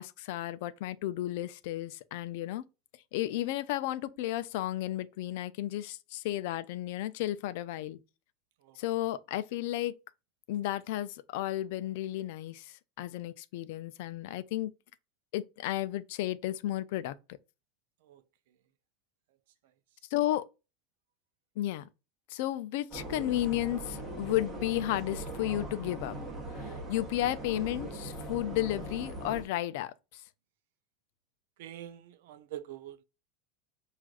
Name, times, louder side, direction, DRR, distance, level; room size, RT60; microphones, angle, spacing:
voice 1, 0.0-2.6 3.1-8.0 8.8-10.0 10.5-14.7 15.3-17.2 20.1-20.5 21.6-21.9 22.3-26.2 26.5-30.2, left 14 dB, 60° left, 0.4 m, -33 dB
sound 1, 22.9-29.4, right 2 dB, 10° right, 0.9 m, -40 dB
voice 2, 31.6-33.0, right 12 dB, 70° right, 0.4 m, -44 dB
6.0 x 2.4 x 2.4 m
supercardioid pair, 160°, 0 cm